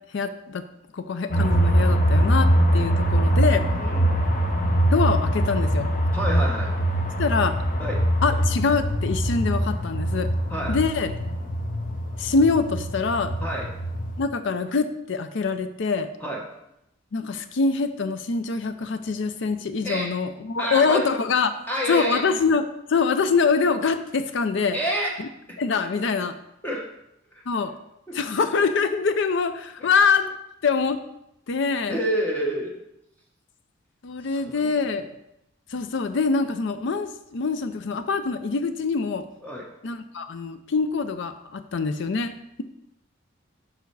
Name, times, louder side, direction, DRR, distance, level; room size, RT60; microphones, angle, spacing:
voice 1, 0.1-0.6 0.9-3.7 4.9-5.9 7.2-7.6 8.2-10.3 10.7-11.3 12.2-13.3 14.2-16.1 17.1-21.5 21.9-24.8 25.2-25.3 25.6-26.4 27.5-27.7 28.1-30.3 30.6-31.0 31.5-32.0 34.0-35.1 35.7-39.3 39.8-42.3, left 4 dB, 65° left, 10 dB, 0.5 m, -24 dB
sound 1, 1.3-14.2, right 1 dB, 45° left, 0.9 m, -23 dB
voice 2, 2.9-3.2 3.8-4.2 6.1-6.7 7.8-8.1 10.5-10.8 13.4-13.7 16.2-16.4 19.8-20.1 20.6-21.1 21.7-22.2 24.7-25.1 25.5-25.6 26.6-26.8 27.3-27.4 28.1-28.2 29.8-29.9 31.9-32.7 34.3-34.4 39.4-39.6, equal, 10° left, -2 dB, 1.0 m, -28 dB
6.9 x 5.7 x 4.7 m, 0.83 s
head